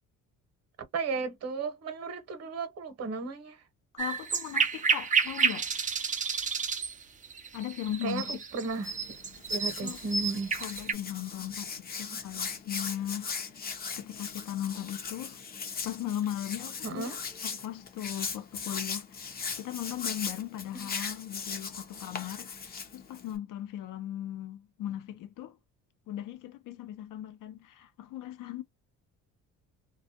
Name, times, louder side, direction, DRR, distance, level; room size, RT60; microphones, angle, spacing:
voice 1, 0.9-3.6 8.0-8.9 9.5-10.5 12.1-12.2 16.8-17.2 20.7-20.9, right 4 dB, 50° right, 0.9 m, -34 dB
voice 2, 3.9-5.7 7.5-8.4 9.8-10.0 10.6-13.5 13.9-15.4 15.8-17.2 17.4-25.6 26.1-28.6, left 12 dB, 70° left, 0.7 m, -38 dB
sound 1, 4.0-10.9, right 5 dB, 25° right, 0.4 m, -30 dB
Hands, 8.7-23.4, left 5 dB, 30° left, 0.6 m, -39 dB
2.3 x 2.0 x 2.7 m
cardioid pair, 105°, 33 cm